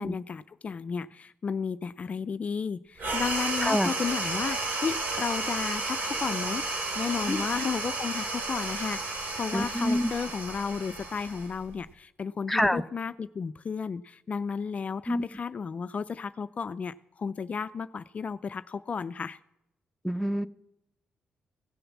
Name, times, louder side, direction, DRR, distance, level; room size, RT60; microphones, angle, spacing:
voice 1, 0.0-6.6 7.0-19.4, left 6 dB, 45° left, 13 dB, 0.4 m, -33 dB
sound 1, 3.0-11.9, right 2 dB, 65° right, 2.6 m, -32 dB
voice 2, 9.5-10.1 12.5-12.8 15.1-15.2 20.0-20.5, equal, 5° left, 8 dB, 0.6 m, -26 dB
16.0 x 6.9 x 7.1 m, 0.88 s
cardioid pair, 85°, 3 cm